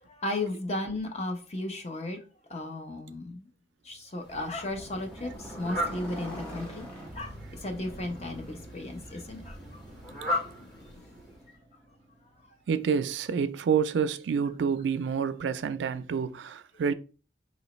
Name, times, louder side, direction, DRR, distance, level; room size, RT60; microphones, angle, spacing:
voice 1, 0.0-2.2 2.5-3.5 3.8-6.8 7.1-9.8 10.3-10.5, left 2 dB, 35° left, 0.6 m, -35 dB
Fowl, 4.2-11.5, equal, 70° left, 1.4 m, -39 dB
Motorcycle, 4.5-12.6, right 1 dB, 5° left, 1.6 m, -45 dB
voice 2, 12.7-16.9, right 6 dB, 80° right, 0.3 m, -28 dB
4.0 x 2.9 x 3.0 m
head